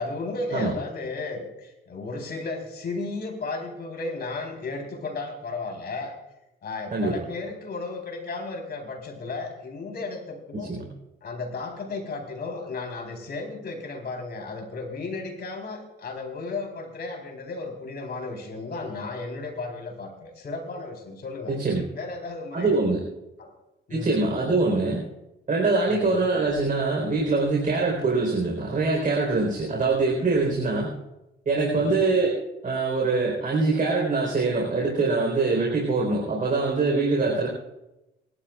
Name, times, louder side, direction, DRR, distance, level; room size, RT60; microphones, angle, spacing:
voice 1, 0.0-6.1 6.6-10.7 11.2-21.6 21.9-22.8 23.4-23.5 23.9-24.2 25.9-26.1 30.6-30.7 31.7-32.0 37.2-37.4, left 3 dB, 55° left, 2 dB, 4.0 m, -34 dB
voice 2, 10.5-10.8 21.5-21.8 22.5-23.0 23.9-25.0 25.5-30.9 31.5-32.3 32.6-37.5, right 3 dB, 45° right, -2 dB, 4.4 m, -23 dB
28.5 x 12.5 x 2.5 m, 0.95 s
cardioid pair, 90°, 20 cm